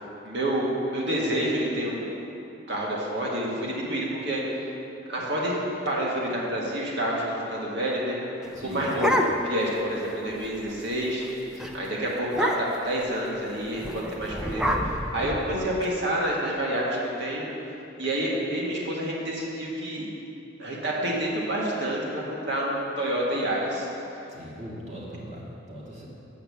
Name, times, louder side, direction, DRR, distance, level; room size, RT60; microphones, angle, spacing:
voice 1, 0.2-2.2 2.7-4.4 5.1-5.6 5.9-8.2 8.6-11.2 11.7-17.5 18.0-20.1 20.6-23.9, right 1 dB, 65° right, -4 dB, 1.7 m, -28 dB
sound 1, 8.4-9.7 10.1-10.2 10.4-10.8 11.1-11.3 11.6-11.7 12.3-12.9 13.8-15.8, equal, 5° right, 0.4 m, -28 dB
voice 2, 8.5-9.0 11.5-11.8 24.3-26.0, equal, 40° right, -5 dB, 1.8 m, -40 dB
6.9 x 5.7 x 7.0 m, 2.8 s
head